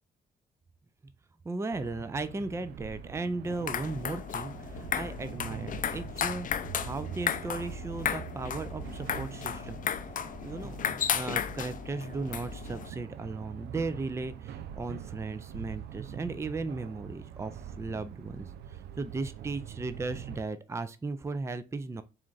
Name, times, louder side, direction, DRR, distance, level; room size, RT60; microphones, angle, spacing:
voice 1, 1.4-6.5 6.8-9.8 10.4-10.8 11.1-22.0, right 3 dB, 15° right, 0.4 m, -36 dB
sound 1, 1.7-20.4, right 9 dB, 80° right, 0.4 m, -44 dB
sound 2, 3.4-12.9, left 8 dB, 50° left, 0.5 m, -34 dB
4.3 x 2.6 x 3.8 m
supercardioid pair, 65°, 17 cm